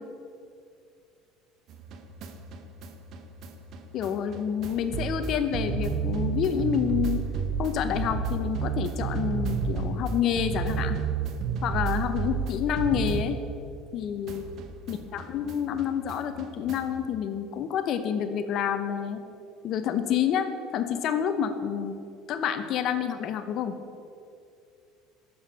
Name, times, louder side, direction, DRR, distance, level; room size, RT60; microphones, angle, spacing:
sound 1, 1.7-14.0 14.3-17.0, right 6 dB, 55° right, 0.7 m, -32 dB
voice 1, 3.9-7.2 7.6-11.0 11.6-13.4 13.9-14.4 14.9-19.2 19.6-20.5 20.7-22.0 22.3-24.0, left 8 dB, 55° left, 9 dB, 0.7 m, -28 dB
6.8 x 5.6 x 6.7 m, 2.4 s
supercardioid pair, 110°, 0 cm